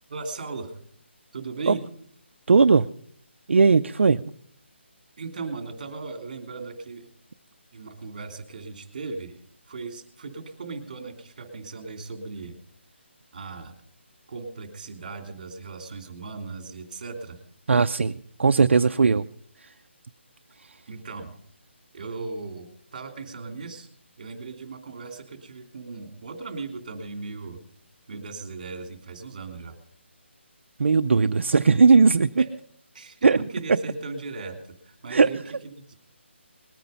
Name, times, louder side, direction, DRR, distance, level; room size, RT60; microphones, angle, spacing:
voice 1, 0.1-0.8 1.3-1.8 5.2-7.1 7.7-9.4 9.7-12.5 13.3-13.7 14.3-17.4 20.9-21.3 21.9-23.9 24.2-27.6 28.1-29.7 32.4-32.5 32.9-34.6 34.8-35.9, right 4 dB, 35° right, 5 dB, 2.9 m, -37 dB
voice 2, 2.5-2.9 3.5-4.2 17.7-19.2 30.8-32.4 33.2-33.4 35.1-35.3, right 4 dB, 70° right, 8 dB, 0.5 m, -18 dB
20.5 x 9.3 x 5.6 m, 0.62 s
hypercardioid pair, 175°, 7 cm